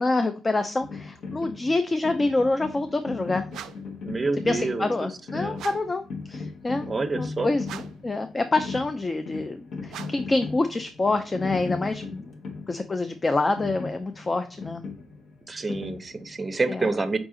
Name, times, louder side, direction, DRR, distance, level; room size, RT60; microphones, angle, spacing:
voice 1, 0.0-3.5 4.5-6.0 6.3-6.9 7.2-7.6 8.0-9.6 9.8-12.3 12.7-14.8 16.7-16.9, left 2 dB, 25° left, 8 dB, 0.4 m, -26 dB
sound 1, 0.8-16.6, left 4 dB, 65° left, 1.0 m, -38 dB
sound 2, 3.5-4.0 5.5-6.0 7.6-8.1 9.9-10.4, right 10 dB, 80° right, 0.4 m, -41 dB
voice 2, 4.0-5.6 6.9-7.5 15.5-17.2, right 3 dB, 25° right, 10 dB, 0.6 m, -28 dB
4.9 x 2.4 x 3.7 m, 0.39 s
cardioid pair, 90°, 0 cm